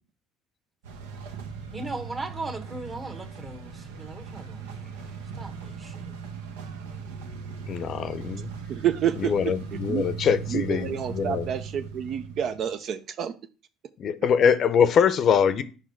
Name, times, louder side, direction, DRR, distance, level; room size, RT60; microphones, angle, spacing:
sound 1, 0.8-12.7, right 6 dB, 85° right, 0.8 m, -38 dB
voice 1, 1.7-6.1, right 2 dB, 30° right, 1.3 m, -38 dB
voice 2, 7.7-8.5 9.2-11.5 14.0-15.6, left 7 dB, 50° left, 0.6 m, -23 dB
voice 3, 8.7-9.3 9.9-10.0 10.5-13.3, right 9 dB, 55° right, 0.4 m, -28 dB
5.4 x 4.9 x 4.4 m
hypercardioid pair, 65°, 0 cm